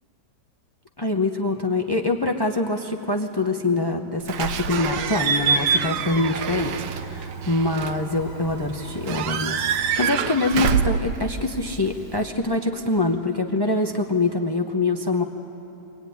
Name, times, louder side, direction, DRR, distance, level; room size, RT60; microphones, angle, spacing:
voice 1, 1.0-15.2, left 2 dB, 35° left, 3 dB, 0.4 m, -24 dB
Slam / Squeak / Alarm, 4.3-12.2, right 6 dB, 85° right, 1.6 m, -26 dB
sound 1, 4.8-10.5, left 1 dB, 45° right, 3.6 m, -48 dB
24.5 x 21.5 x 9.4 m, 3.0 s
omnidirectional pair, 2.0 m